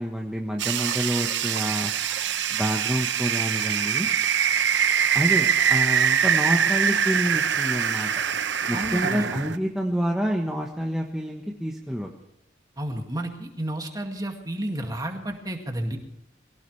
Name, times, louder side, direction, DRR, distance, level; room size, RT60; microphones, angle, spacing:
voice 1, 0.0-1.9 2.5-4.1 5.1-8.1 8.7-12.1, equal, 5° right, -1 dB, 1.2 m, -28 dB
sound 1, 0.6-9.6, right 8 dB, 70° right, 0.9 m, -24 dB
voice 2, 8.7-9.2 12.8-16.0, right 1 dB, 20° right, 3 dB, 2.1 m, -31 dB
23.5 x 17.5 x 3.3 m, 0.88 s
head